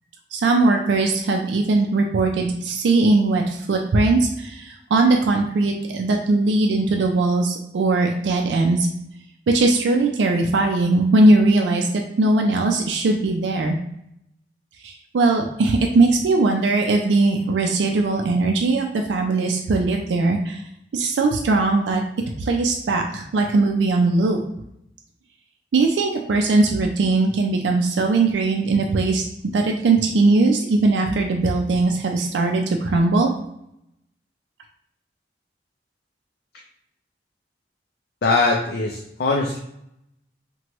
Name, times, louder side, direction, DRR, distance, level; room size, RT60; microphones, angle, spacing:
voice 1, 0.3-8.9 9.5-13.7 14.8-20.6 20.9-22.0 22.4-24.4 25.7-33.3, right 3 dB, 85° right, 2 dB, 0.4 m, -20 dB
voice 2, 38.2-39.6, left 3 dB, 60° left, -1 dB, 0.4 m, -21 dB
2.9 x 2.2 x 2.9 m, 0.77 s
head